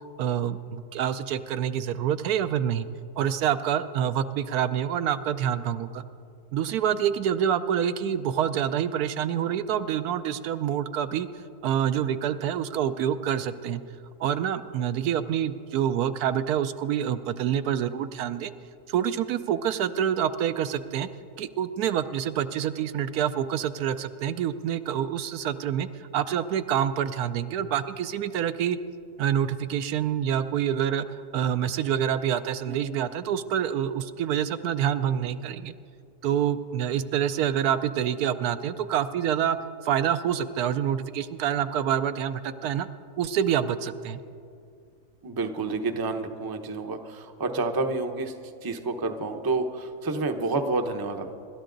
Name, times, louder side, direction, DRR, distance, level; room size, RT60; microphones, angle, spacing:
voice 1, 0.2-2.9 3.2-6.0 6.5-11.3 11.6-13.8 14.2-18.5 18.9-21.1 21.4-28.8 29.2-35.7 36.2-39.6 39.8-42.9 43.2-44.2, right 9 dB, 80° right, 11 dB, 1.1 m, -27 dB
voice 2, 32.7-33.1 45.2-48.3 48.6-51.3, right 3 dB, 25° right, 5 dB, 0.5 m, -29 dB
26.0 x 12.5 x 3.9 m, 2.4 s
omnidirectional pair, 1.6 m